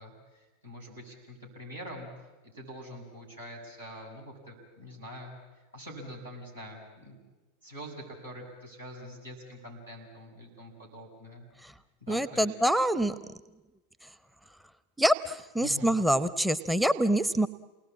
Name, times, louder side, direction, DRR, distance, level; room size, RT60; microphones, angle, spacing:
voice 1, 0.0-2.1 2.4-5.4 5.7-7.2 7.6-11.5 12.0-12.5 15.6-15.9, equal, 90° right, -3 dB, 7.2 m, -45 dB
voice 2, 12.1-13.2 15.0-17.5, right 1 dB, 5° right, 12 dB, 0.8 m, -25 dB
28.5 x 19.5 x 8.7 m, 1.1 s
figure-of-eight pair, 85°, 0 cm